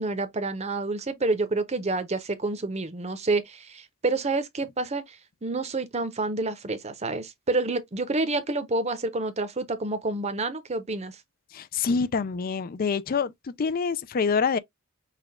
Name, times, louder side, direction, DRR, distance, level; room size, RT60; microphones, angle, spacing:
voice 1, 0.0-11.2, right 3 dB, 30° right, 0.7 m, -28 dB
voice 2, 11.5-14.6, left 5 dB, 40° left, 0.4 m, -26 dB
5.8 x 2.3 x 3.5 m
head